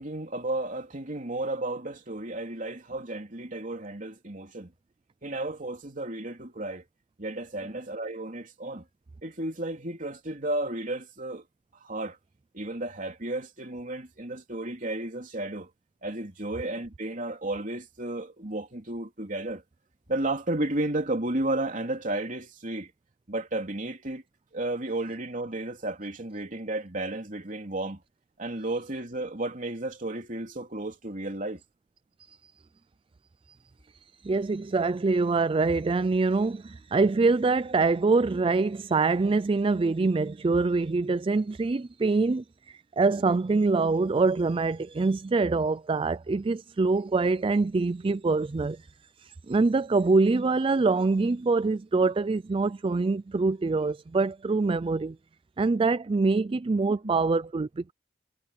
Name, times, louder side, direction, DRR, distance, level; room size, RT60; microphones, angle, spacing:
voice 1, 0.0-4.7 5.2-6.8 7.2-8.8 9.2-11.4 11.8-12.2 12.5-15.7 16.0-19.6 20.1-22.9 23.3-24.2 24.5-28.0 28.4-31.6 56.5-56.6 57.0-57.1, right 2 dB, 45° right, 3.2 m, -33 dB
voice 2, 33.9-48.8 49.2-55.2 55.6-57.9, right 3 dB, 30° right, 0.4 m, -25 dB
head